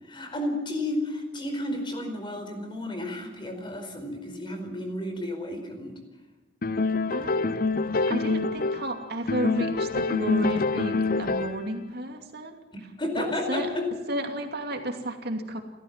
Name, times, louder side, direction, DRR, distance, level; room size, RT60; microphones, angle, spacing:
voice 1, 0.1-5.9 13.0-13.8, left 1 dB, 25° left, 5 dB, 4.7 m, -32 dB
sound 1, 6.6-8.9 9.3-11.7, left 3 dB, 50° left, 0.7 m, -26 dB
voice 2, 7.1-13.7 14.1-15.6, right 1 dB, 60° right, 4 dB, 2.7 m, -33 dB
30.0 x 14.0 x 7.6 m, 1.2 s
head